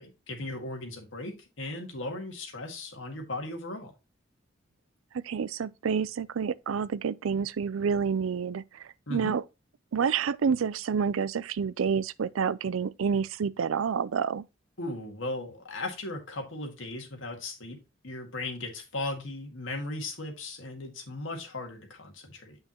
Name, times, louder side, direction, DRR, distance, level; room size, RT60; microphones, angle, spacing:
voice 1, 0.0-3.9 9.1-9.4 14.8-22.6, left 2 dB, 75° left, 1.9 m, -37 dB
voice 2, 5.1-9.4 9.9-14.4, right 6 dB, 90° right, 0.4 m, -29 dB
8.0 x 5.6 x 3.0 m
head